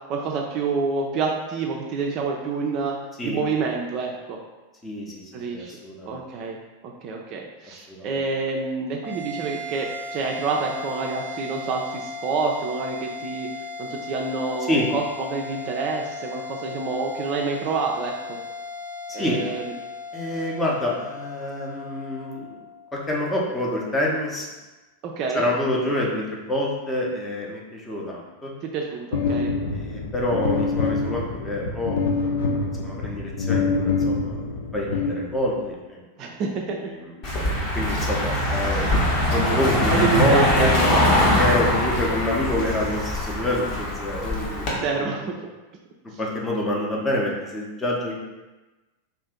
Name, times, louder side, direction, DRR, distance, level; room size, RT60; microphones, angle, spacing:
voice 1, 0.1-3.0 3.2-4.4 5.3-5.7 6.0-13.5 13.8-18.4 19.1-19.7 25.0-25.5 28.6-29.5 36.2-36.8 37.5-37.6 39.1-39.3 39.9-41.0 44.8-45.4, right 4 dB, 40° right, 0 dB, 0.3 m, -28 dB
voice 2, 4.8-5.2 5.5-6.2 7.7-8.2 14.7-14.9 19.2-19.4 20.1-22.6 22.9-24.5 25.3-28.5 29.7-32.0 32.2-34.4 34.7-36.3 36.8-40.7 41.4-44.7 44.9-45.3 46.2-48.2, left 1 dB, 10° left, -3 dB, 0.6 m, -27 dB
sound 1, 9.0-23.6, left 3 dB, 85° left, 0.9 m, -37 dB
sound 2, 29.1-35.7, left 4 dB, 65° left, 0.4 m, -26 dB
Car passing by, 37.2-44.7, left 1 dB, 35° left, 0.8 m, -22 dB
2.5 x 2.4 x 3.5 m, 1.1 s
figure-of-eight pair, 90°, 0 cm